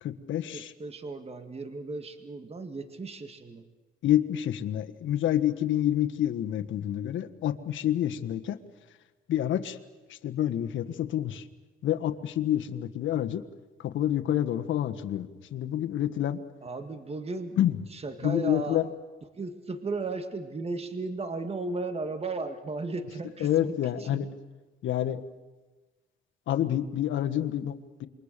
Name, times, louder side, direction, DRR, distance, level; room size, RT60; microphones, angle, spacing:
voice 1, 0.0-0.7 4.0-8.6 9.3-9.8 10.1-11.4 11.8-13.4 13.8-16.4 17.6-17.7 18.2-18.9 23.4-24.3 24.8-25.2 26.5-28.1, left 11 dB, 75° left, 7 dB, 1.5 m, -28 dB
voice 2, 0.5-3.7 16.6-17.6 17.9-18.8 19.3-23.7 24.0-24.2, right 3 dB, 30° right, 8 dB, 2.0 m, -35 dB
27.5 x 23.5 x 6.8 m, 1.2 s
cardioid pair, 90°, 20 cm